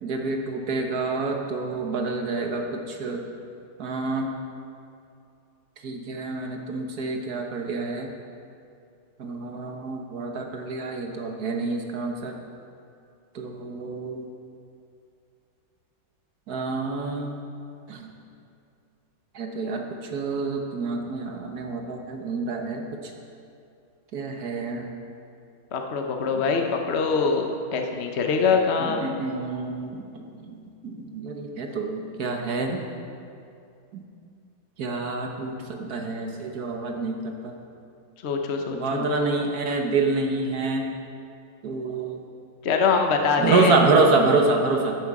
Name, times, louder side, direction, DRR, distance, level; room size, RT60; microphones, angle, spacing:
voice 1, 0.0-3.2 3.8-4.3 5.8-8.1 9.2-12.3 13.3-14.3 16.5-17.4 17.9-18.1 19.3-19.9 20.1-22.8 24.1-24.9 26.3-26.4 28.8-30.6 30.8-32.8 33.9-34.0 34.8-37.5 38.7-40.9 41.6-42.2 43.4-45.0, right 3 dB, 55° right, 3 dB, 1.4 m, -27 dB
voice 2, 25.7-29.1 38.2-39.3 42.6-43.8, left 5 dB, 50° left, 3 dB, 0.8 m, -24 dB
13.0 x 10.5 x 4.8 m, 2.5 s
omnidirectional pair, 2.2 m